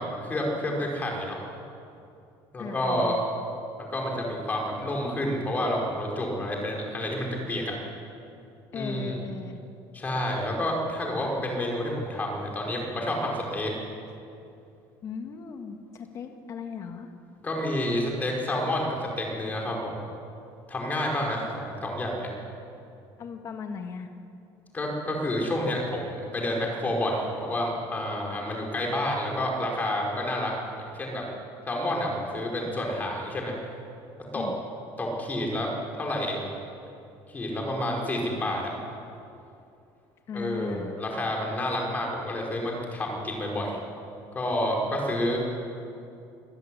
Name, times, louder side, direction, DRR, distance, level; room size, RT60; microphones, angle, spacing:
voice 1, 0.0-1.4 2.5-3.2 3.8-7.8 8.7-9.2 9.9-13.7 17.4-20.0 20.7-22.3 24.7-30.5 30.9-31.2 31.7-33.5 34.3-34.4 35.0-36.4 37.3-38.7 40.3-43.8 44.3-45.4, left 1 dB, 15° left, -1 dB, 5.1 m, -29 dB
voice 2, 2.6-3.2 8.7-9.6 15.0-17.1 21.4-21.5 23.2-24.1 34.3-34.6 40.3-41.0, left 6 dB, 35° left, 5 dB, 1.8 m, -37 dB
26.0 x 15.0 x 10.0 m, 2.6 s
cardioid pair, 165°, 10 cm